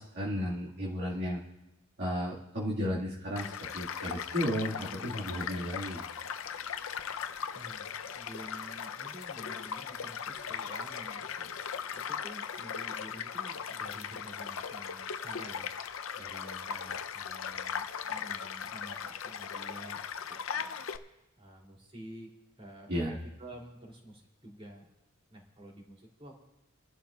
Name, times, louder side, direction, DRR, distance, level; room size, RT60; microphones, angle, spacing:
voice 1, 0.0-1.4 2.0-6.0 22.9-23.2, equal, 55° right, -6 dB, 1.8 m, -34 dB
Child speech kid speaking / Stream / Car passing by, 3.4-21.0, left 7 dB, 75° left, 0.6 m, -38 dB
voice 2, 7.5-20.0 20.3-20.8 21.4-22.3 22.6-24.9 25.3-26.4, right 1 dB, 30° right, -1 dB, 2.9 m, -50 dB
29.0 x 11.5 x 2.4 m, 0.96 s
head